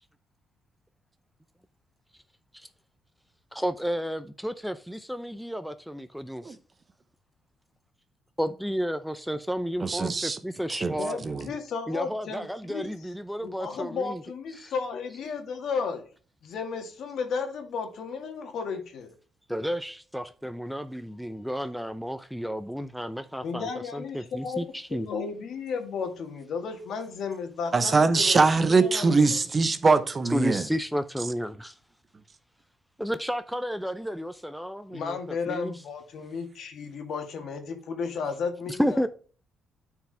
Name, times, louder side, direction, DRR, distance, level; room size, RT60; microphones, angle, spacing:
voice 1, 3.5-6.6 8.4-11.2 11.9-14.2 14.5-14.7 19.5-25.1 30.3-31.8 33.0-35.2 35.5-35.7 38.7-39.1, equal, ahead, 0.5 m, -32 dB
voice 2, 9.8-10.4 10.7-10.9 11.2-11.5 27.7-30.6, right 4 dB, 35° right, 0.9 m, -22 dB
voice 3, 11.0-12.9 13.4-16.0 16.4-19.1 23.3-24.6 25.0-29.2 34.9-39.1, left 5 dB, 70° left, 1.8 m, -34 dB
9.0 x 4.9 x 3.3 m
cardioid pair, 90°, 0 cm